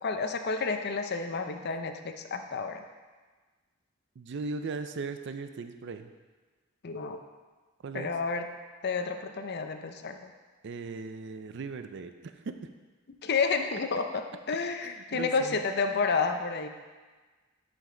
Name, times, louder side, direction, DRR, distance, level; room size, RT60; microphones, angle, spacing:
voice 1, 0.0-2.8 6.8-7.2 7.9-8.5 8.8-10.3 13.2-16.7, left 4 dB, 50° left, 6 dB, 0.6 m, -30 dB
voice 2, 4.2-6.1 7.8-8.1 10.6-12.7 14.8-15.6, right 4 dB, 60° right, 9 dB, 0.4 m, -38 dB
11.0 x 5.2 x 3.8 m, 1.3 s
head